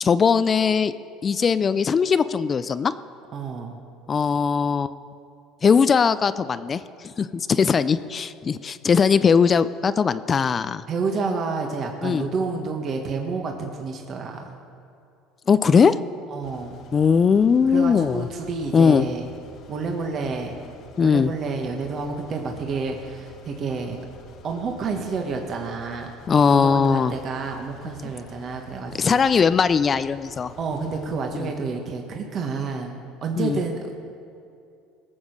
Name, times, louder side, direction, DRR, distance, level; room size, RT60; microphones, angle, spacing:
voice 1, 0.0-0.9 1.2-2.9 4.1-4.9 5.6-10.8 12.0-12.2 15.5-16.0 16.9-18.3 18.7-19.0 21.0-21.3 26.3-27.1 29.0-30.5 31.3-31.5 33.4-33.6, left 6 dB, 35° left, 14 dB, 0.4 m, -19 dB
voice 2, 3.3-3.8 10.9-14.6 16.3-16.8 17.7-19.3 19.7-20.6 21.0-24.0 24.4-26.1 26.5-29.2 30.5-33.9, right 4 dB, 45° right, 2 dB, 1.4 m, -29 dB
sound 1, 16.4-31.5, left 2 dB, 55° left, 1.3 m, -49 dB
17.5 x 7.1 x 6.5 m, 2.6 s
supercardioid pair, 95°, 0 cm